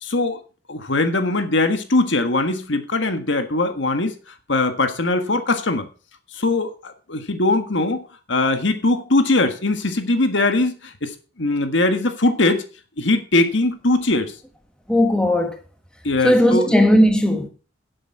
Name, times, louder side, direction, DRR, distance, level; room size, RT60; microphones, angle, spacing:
voice 1, 0.0-0.4 0.7-5.9 6.3-8.0 8.3-11.1 11.4-12.6 13.0-14.3 16.0-16.7, left 2 dB, 65° left, 1.6 m, -21 dB
voice 2, 14.9-15.6 16.2-17.5, equal, 5° left, 1.5 m, -16 dB
11.0 x 8.1 x 5.9 m
head